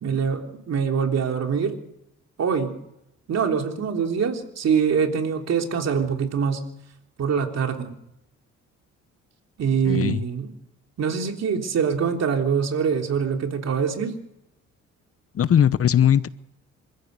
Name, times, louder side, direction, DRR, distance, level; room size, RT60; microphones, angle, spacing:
voice 1, 0.0-1.7 2.4-2.8 3.3-6.6 7.2-7.9 9.6-10.5 11.0-14.1, right 6 dB, 60° right, 3.6 m, -24 dB
voice 2, 9.8-10.2 15.3-16.3, left 9 dB, 50° left, 0.9 m, -19 dB
27.0 x 15.0 x 6.8 m
cardioid pair, 90°, 30 cm